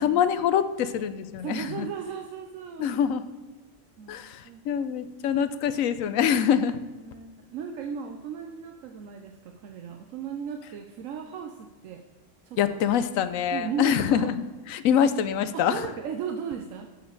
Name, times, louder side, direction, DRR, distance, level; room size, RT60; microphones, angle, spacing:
voice 1, 0.0-1.9 2.8-3.2 4.1-6.8 12.6-14.3 14.7-15.8, left 8 dB, 90° left, 12 dB, 1.0 m, -25 dB
voice 2, 1.4-2.9 4.0-4.2 4.4-4.6 7.0-12.0 12.4-13.0 13.5-14.3 15.5-16.9, right 7 dB, 80° right, 4 dB, 1.1 m, -36 dB
13.0 x 6.8 x 3.9 m, 1.3 s
omnidirectional pair, 1.3 m